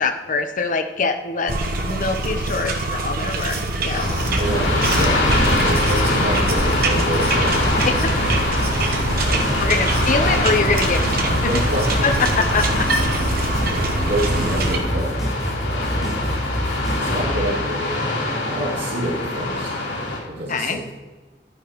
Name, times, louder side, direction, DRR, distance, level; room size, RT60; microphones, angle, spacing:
voice 1, 0.0-1.5 1.8-4.1 7.9-8.0 9.6-11.5 12.0-12.9 20.5-20.8, left 4 dB, 45° left, 7 dB, 0.8 m, -23 dB
sound 1, 1.5-14.8, right 2 dB, 55° right, 1.0 m, -25 dB
sound 2, 3.9-20.2, left 2 dB, 85° left, 3.4 m, -24 dB
sound 3, 4.0-17.3, equal, ahead, 3.8 m, -26 dB
voice 2, 4.2-7.7 9.2-9.9 11.5-11.9 13.4-16.2 17.0-19.8 20.3-20.9, right 1 dB, 75° right, -12 dB, 3.4 m, -28 dB
11.5 x 10.0 x 3.1 m, 1.3 s
head